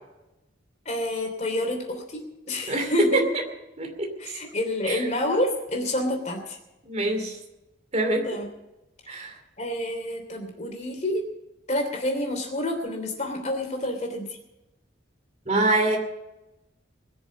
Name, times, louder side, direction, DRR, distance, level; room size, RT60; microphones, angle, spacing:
voice 1, 0.8-2.2 2.5-3.3 4.2-6.6 8.2-8.5 9.6-11.2 11.7-14.4, left 1 dB, 35° left, 3 dB, 3.0 m, -28 dB
voice 2, 2.7-3.2 3.8-4.1 4.9-5.0 6.9-7.4 7.9-8.3 9.1-9.3 15.5-16.0, right 2 dB, 35° right, 3 dB, 2.6 m, -24 dB
21.0 x 7.0 x 8.4 m, 0.97 s
head